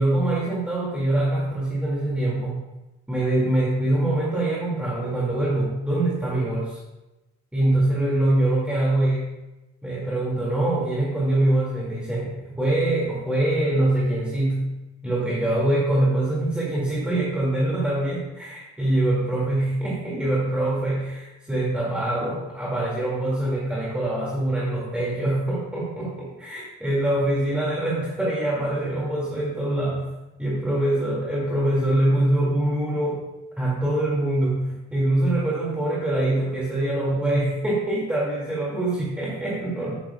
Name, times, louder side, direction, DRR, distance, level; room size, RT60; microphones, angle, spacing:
voice 1, 0.0-2.6 3.1-6.8 7.5-9.3 9.8-14.7 15.0-30.0 30.4-33.2 33.6-40.0, right 1 dB, 5° right, -6 dB, 2.3 m, -24 dB
11.0 x 9.5 x 2.3 m, 1.0 s
cardioid pair, 90°, 30 cm